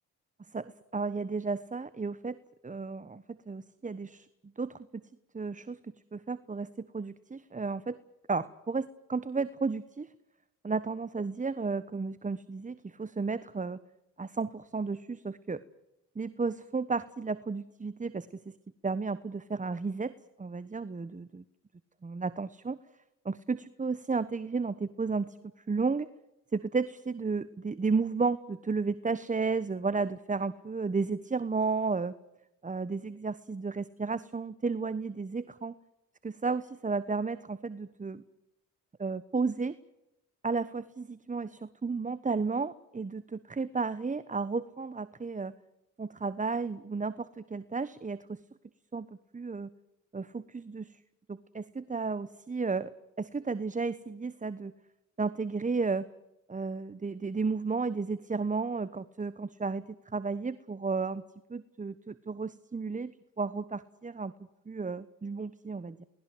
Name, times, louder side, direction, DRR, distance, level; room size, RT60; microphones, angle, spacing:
voice 1, 0.5-4.3 4.6-5.0 5.3-8.0 8.3-10.1 10.6-13.8 14.2-15.6 16.1-18.6 18.8-21.4 22.0-22.8 23.2-25.4 25.7-26.1 26.5-32.1 32.6-35.7 36.2-38.2 39.0-39.8 40.4-45.5 46.0-48.4 48.9-49.1 49.3-49.7 50.1-51.0 51.3-52.9 53.2-54.7 55.2-56.1 56.5-59.8 60.1-61.2 61.5-64.3 64.7-66.0, right 4 dB, 25° right, 15 dB, 1.1 m, -33 dB
29.0 x 19.5 x 7.8 m, 0.94 s
cardioid pair, 65°, 32 cm